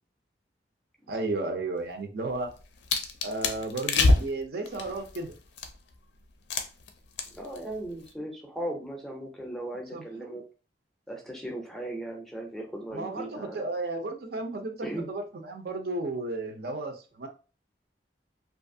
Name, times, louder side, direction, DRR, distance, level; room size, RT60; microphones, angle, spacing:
voice 1, 1.1-2.5 3.2-5.3 9.9-10.4 12.9-17.3, right 2 dB, 60° right, 4 dB, 0.5 m, -33 dB
sound 1, 2.3-5.9 6.5-6.9 7.2-7.6 7.8-8.1, left 3 dB, 75° left, 0.4 m, -26 dB
voice 2, 7.3-10.4 11.1-13.7 14.8-15.1, right 1 dB, ahead, 1 dB, 0.5 m, -37 dB
2.6 x 2.4 x 2.6 m, 0.34 s
head